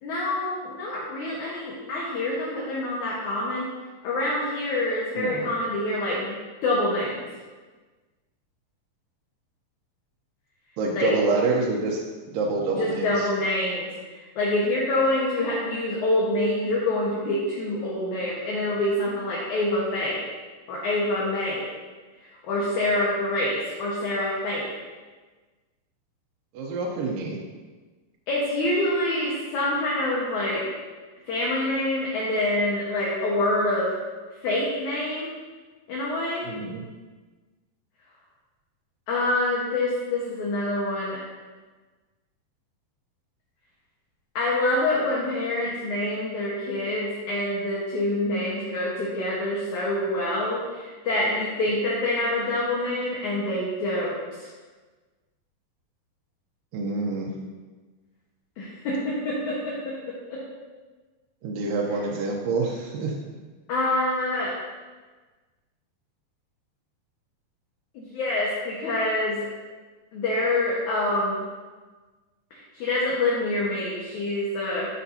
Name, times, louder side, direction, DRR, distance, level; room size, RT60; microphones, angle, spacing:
voice 1, 0.0-3.7 4.0-7.3 11.0-11.1 12.7-20.2 20.7-21.7 22.4-24.7 28.3-30.6 31.3-33.9 34.4-35.3 35.9-36.5 39.1-41.2 44.4-54.5 58.6-59.9 60.3-60.4 63.7-64.5 67.9-69.4 70.1-71.4 72.7-74.9, left 1 dB, 65° left, -6 dB, 2.7 m, -26 dB
voice 2, 5.2-5.5 10.8-12.0 12.3-13.3 26.5-27.4 36.4-36.8 56.7-57.3 61.4-63.1, right 3 dB, 80° right, -2 dB, 2.5 m, -27 dB
14.5 x 6.7 x 2.8 m, 1.3 s
omnidirectional pair, 4.0 m